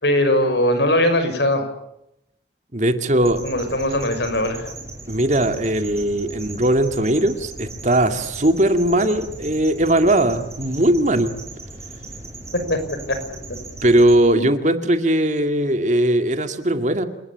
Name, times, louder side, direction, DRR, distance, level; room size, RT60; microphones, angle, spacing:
voice 1, 0.0-1.6 3.4-4.7 12.7-12.8 14.3-14.5, left 1 dB, 65° left, 8 dB, 6.0 m, -20 dB
voice 2, 2.7-3.4 5.1-11.4 13.8-17.1, right 1 dB, 40° right, 8 dB, 2.2 m, -19 dB
sound 1, 3.2-14.2, right 2 dB, 15° right, 5.7 m, -37 dB
29.0 x 20.0 x 8.6 m, 0.81 s
head